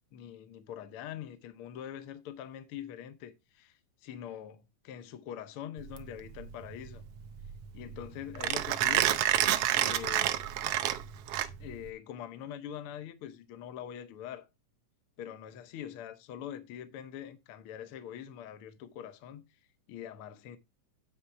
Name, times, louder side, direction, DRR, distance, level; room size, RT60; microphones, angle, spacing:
voice 1, 0.1-7.0 7.7-9.3 9.7-10.4 11.6-14.5 15.2-19.4 19.9-20.6, left 10 dB, 70° left, 1.3 m, -43 dB
Mechanisms, 5.8-11.9, right 12 dB, 75° right, 1.4 m, -29 dB
9.9 x 4.3 x 5.9 m
omnidirectional pair, 3.5 m